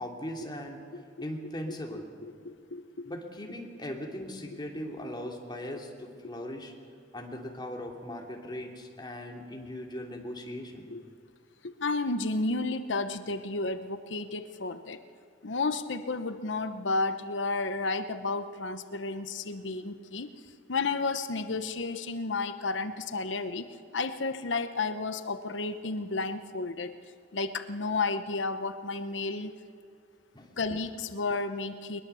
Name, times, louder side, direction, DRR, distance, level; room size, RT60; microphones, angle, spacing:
voice 1, 0.0-0.8 1.2-2.1 3.0-6.7 7.1-10.9 30.3-30.5, left 1 dB, 25° left, 1 dB, 2.9 m, -39 dB
voice 2, 2.2-3.1 10.9-11.0 11.6-15.0 15.4-20.3 20.7-23.7 23.9-27.0 27.3-29.6 30.6-32.0, left 3 dB, 85° left, 11 dB, 1.0 m, -32 dB
21.5 x 21.5 x 7.1 m, 2.2 s
head